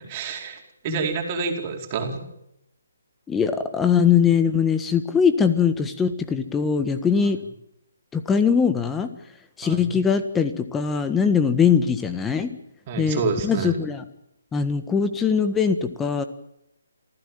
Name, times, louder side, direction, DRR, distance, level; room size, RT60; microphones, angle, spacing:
voice 1, 0.1-2.2 9.6-9.9 12.9-13.7, right 4 dB, 30° right, 2 dB, 4.6 m, -28 dB
voice 2, 3.3-7.4 8.1-9.1 9.6-12.5 13.0-14.0 14.5-16.2, left 6 dB, 10° left, 9 dB, 1.6 m, -21 dB
27.5 x 15.5 x 9.2 m, 0.82 s
figure-of-eight pair, 140°, 0 cm